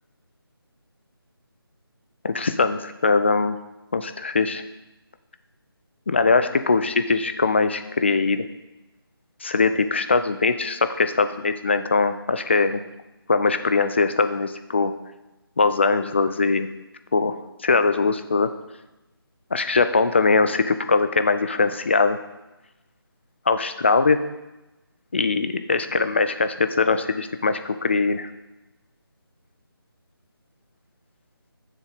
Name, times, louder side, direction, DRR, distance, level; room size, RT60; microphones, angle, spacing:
voice 1, 2.2-3.6 3.9-4.6 6.1-8.5 9.4-12.8 13.3-14.9 15.6-16.7 17.1-17.4 17.6-18.5 19.5-22.2 23.5-24.2 25.1-28.3, left 4 dB, 30° left, 10 dB, 0.4 m, -21 dB
7.4 x 6.2 x 4.9 m, 0.98 s
figure-of-eight pair, 160°, 13 cm